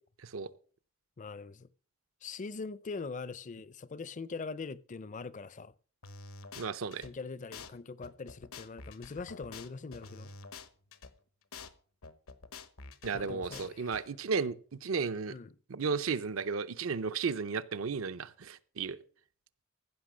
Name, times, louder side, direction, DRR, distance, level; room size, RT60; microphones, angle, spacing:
voice 1, 1.2-1.7 2.2-5.7 7.0-10.3 13.1-14.0 15.3-15.5, left 4 dB, 35° left, 0.5 m, -42 dB
sound 1, 6.0-7.1 7.5-7.7 8.0-11.1 11.5-11.7 12.0-14.0, left 4 dB, 85° left, 1.0 m, -48 dB
voice 2, 6.5-7.1 13.0-14.6 14.8-15.3 15.7-19.0, right 5 dB, 70° right, 0.6 m, -34 dB
15.0 x 5.8 x 6.1 m
head